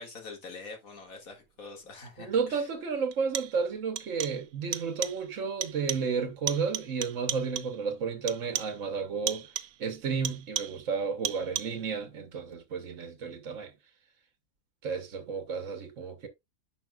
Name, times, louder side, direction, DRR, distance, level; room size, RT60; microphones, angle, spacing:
voice 1, 0.0-2.7, left 3 dB, 75° left, 2.6 m, -45 dB
sound 1, 2.1-2.2 3.1-3.7 4.0-4.5 4.7-5.3 5.6-6.2 6.5-7.8 8.3-8.9 9.3-9.8 10.2-10.9 11.2-11.9, right 12 dB, 90° right, 1.1 m, -36 dB
voice 2, 2.2-9.5 9.8-13.7 14.8-16.3, right 5 dB, 60° right, 1.3 m, -32 dB
10.5 x 5.3 x 2.3 m
omnidirectional pair, 1.5 m